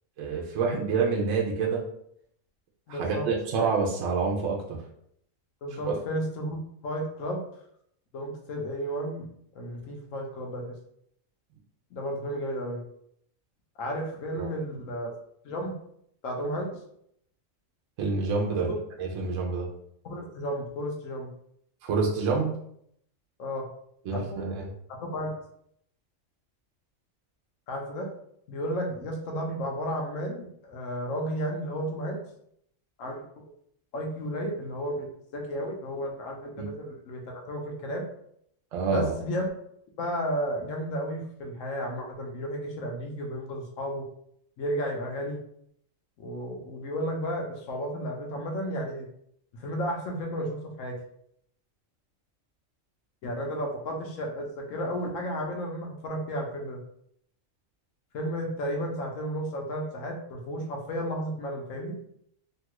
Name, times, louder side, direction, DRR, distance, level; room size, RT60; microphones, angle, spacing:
voice 1, 0.2-1.8 2.9-4.8 5.9-6.0 14.3-14.5 18.0-18.7 19.0-19.7 21.8-22.5 24.1-24.7 36.6-36.7 38.7-39.1, right 4 dB, 70° right, -1 dB, 0.9 m, -27 dB
voice 2, 2.9-3.3 5.6-7.4 8.1-10.7 11.9-12.8 13.8-15.1 15.4-15.7 16.2-16.7 18.7-18.8 20.0-21.3 23.4-23.7 24.1-24.4 25.0-25.3 27.7-28.1 28.5-32.2 33.0-33.2 33.9-35.1 35.3-38.0 38.9-39.5 40.0-44.1 44.6-45.4 46.2-49.1 49.5-51.0 53.2-56.8 58.1-62.0, equal, 75° left, 1 dB, 1.0 m, -33 dB
2.9 x 2.3 x 2.9 m, 0.70 s
omnidirectional pair, 1.4 m